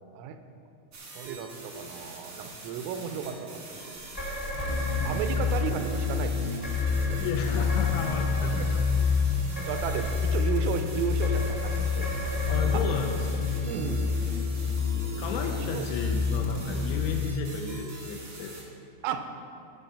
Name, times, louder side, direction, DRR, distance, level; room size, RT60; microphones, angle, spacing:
sound 1, 0.9-18.6, right 2 dB, 55° right, 1.2 m, -44 dB
voice 1, 1.1-4.0 5.1-6.6 7.1-7.3 8.5-8.7 9.0-9.2 9.7-12.1 12.4-12.5 13.7-14.4 15.7-15.8 19.0-19.3, right 7 dB, 85° right, 7 dB, 3.2 m, -34 dB
sound 2, 4.1-14.5, equal, 25° left, 1.0 m, -38 dB
sound 3, 4.6-17.3, left 5 dB, 50° left, 0.6 m, -28 dB
voice 2, 7.2-9.1 12.5-13.4 15.2-18.6, left 5 dB, 80° left, 2 dB, 2.7 m, -33 dB
15.5 x 6.2 x 5.5 m, 2.6 s
omnidirectional pair, 5.8 m